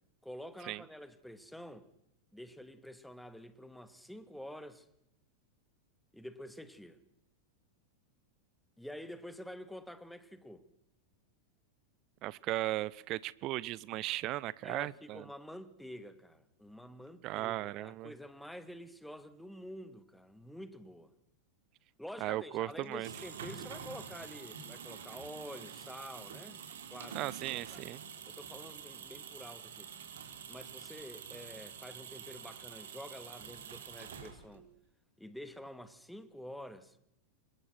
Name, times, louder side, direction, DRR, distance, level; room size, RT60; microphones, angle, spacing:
voice 1, 0.2-1.9 2.3-4.9 6.1-7.0 8.8-10.6 14.6-21.1 22.0-26.6 26.9-27.2 27.5-27.9 28.3-29.9 30.5-34.7 35.2-37.0, equal, ahead, 2.4 m, -48 dB
voice 2, 12.2-15.2 17.2-18.1 22.2-23.1 27.1-28.0, right 17 dB, 40° right, 0.9 m, -36 dB
sound 1, 22.8-34.7, right 7 dB, 60° right, 4.4 m, -47 dB
29.5 x 25.0 x 6.2 m
figure-of-eight pair, 90°, 0 cm